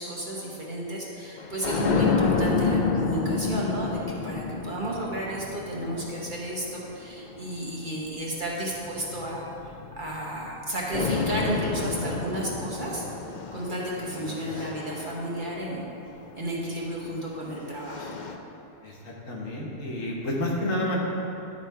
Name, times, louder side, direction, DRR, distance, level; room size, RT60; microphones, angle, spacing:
voice 1, 0.0-13.0 13.5-15.9 16.3-18.1, right 1 dB, 40° right, -4 dB, 1.0 m, -33 dB
sound 1, 1.4-7.9 8.7-10.6 10.9-16.2 17.2-18.4, left 4 dB, 85° left, 0.4 m, -30 dB
voice 2, 14.1-14.6 18.8-21.1, left 1 dB, 70° left, -2 dB, 1.5 m, -31 dB
10.5 x 4.4 x 4.5 m, 2.9 s
omnidirectional pair, 1.4 m